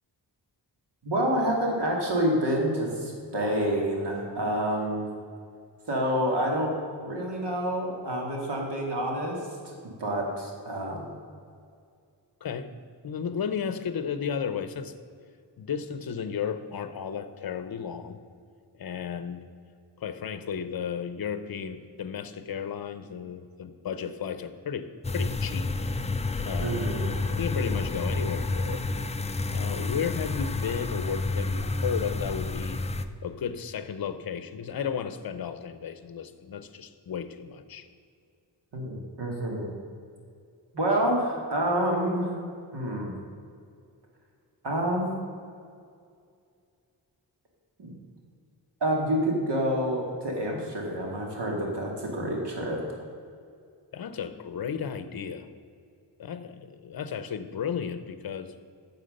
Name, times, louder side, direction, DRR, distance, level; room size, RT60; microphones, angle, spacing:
voice 1, 1.0-5.1 5.9-6.7 7.0-9.4 9.6-11.1 26.6-27.1 38.7-39.7 40.7-42.3 42.7-43.1 44.6-45.2 47.8-47.9 48.8-53.0, right 1 dB, 70° right, -1 dB, 2.4 m, -28 dB
voice 2, 13.0-14.9 15.6-18.2 18.8-19.5 20.0-25.7 26.4-26.9 27.4-28.8 29.5-32.8 33.2-37.9 53.9-55.5 56.2-58.5, left 7 dB, 55° left, 11 dB, 0.7 m, -34 dB
sound 1, 25.0-33.1, left 3 dB, 15° left, 0.3 m, -30 dB
9.3 x 7.5 x 6.6 m, 2.3 s
wide cardioid pair, 140°, 43 cm